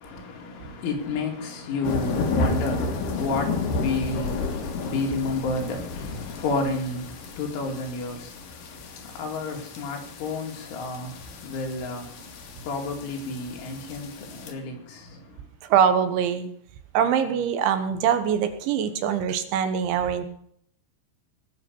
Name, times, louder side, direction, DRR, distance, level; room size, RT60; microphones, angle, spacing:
voice 1, 0.0-7.1 7.4-8.3 9.2-11.1 11.4-12.0 12.7-15.0, left 3 dB, 80° left, 4.9 m, -30 dB
sound 1, 1.8-14.5, left 3 dB, 60° left, 2.6 m, -32 dB
voice 2, 15.6-16.5 17.0-20.3, right 8 dB, 80° right, 3.5 m, -23 dB
18.5 x 6.7 x 7.0 m
omnidirectional pair, 5.4 m